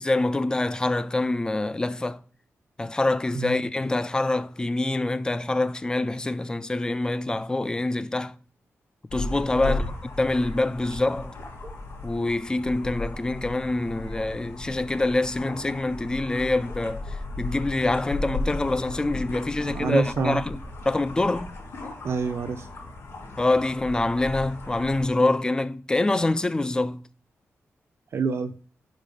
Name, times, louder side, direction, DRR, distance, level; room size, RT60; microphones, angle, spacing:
voice 1, 0.0-2.2 2.8-8.4 9.1-9.8 10.2-11.4 12.0-20.6 20.9-21.5 23.4-27.1, left 2 dB, 15° left, 0.3 m, -25 dB
sound 1, 9.1-25.1, left 2 dB, 70° left, 2.8 m, -36 dB
voice 2, 19.6-20.4 22.0-22.7 28.1-28.5, right 4 dB, 60° right, 0.6 m, -27 dB
5.6 x 5.3 x 5.2 m
wide cardioid pair, 145°, 5 cm